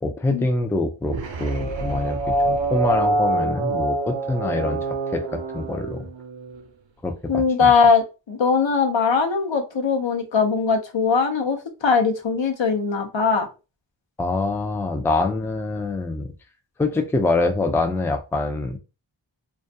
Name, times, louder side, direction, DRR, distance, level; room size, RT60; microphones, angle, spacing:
voice 1, 0.0-2.2 2.5-4.8 5.1-6.1 7.0-7.7 14.2-16.3 16.8-18.8, left 2 dB, 5° left, 0.3 m, -25 dB
sound 1, 1.1-6.6, right 2 dB, 75° right, 0.6 m, -25 dB
voice 2, 7.3-13.5, left 5 dB, 70° left, 0.7 m, -20 dB
2.3 x 2.1 x 2.6 m
wide cardioid pair, 40°, 46 cm